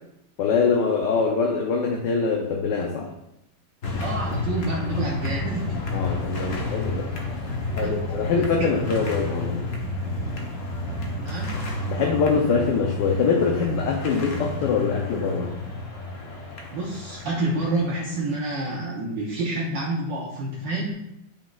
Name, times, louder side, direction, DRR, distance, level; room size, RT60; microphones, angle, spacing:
voice 1, 0.4-3.1 5.9-7.1 7.8-9.6 11.9-15.5, left 5 dB, 70° left, 0 dB, 1.3 m, -23 dB
sound 1, 3.8-18.2, left 2 dB, 50° left, 1.2 m, -30 dB
voice 2, 4.0-5.7 7.8-8.0 8.4-8.5 11.2-11.7 16.7-20.9, right 2 dB, 70° right, -3 dB, 1.5 m, -28 dB
8.8 x 5.1 x 2.4 m, 0.83 s
omnidirectional pair, 2.2 m